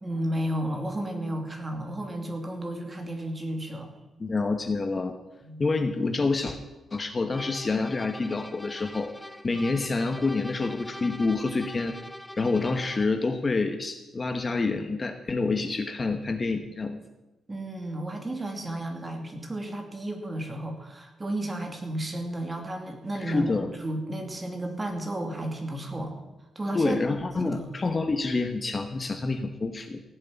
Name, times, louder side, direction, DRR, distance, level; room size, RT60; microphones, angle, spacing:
voice 1, 0.0-3.9 5.4-5.6 17.5-26.1 26.5-27.0 27.4-27.7, right 1 dB, 20° right, 4 dB, 2.5 m, -33 dB
voice 2, 4.2-5.1 5.6-6.6 6.9-9.1 9.4-12.0 12.4-17.0 23.2-23.7 26.7-30.0, left 3 dB, 30° left, 7 dB, 1.1 m, -27 dB
sound 1, 7.3-13.2, left 1 dB, 5° left, 0.7 m, -43 dB
16.0 x 7.7 x 9.9 m, 1.0 s
wide cardioid pair, 145°, 0 cm